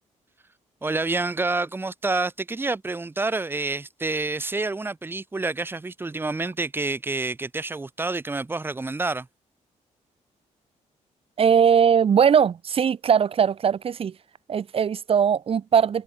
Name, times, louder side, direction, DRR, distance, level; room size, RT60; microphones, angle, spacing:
voice 1, 0.8-9.3, right 3 dB, 15° right, 6.2 m, -28 dB
voice 2, 11.4-14.1 14.5-16.0, right 7 dB, 50° right, 7.0 m, -20 dB
cardioid pair, 145°, 13 cm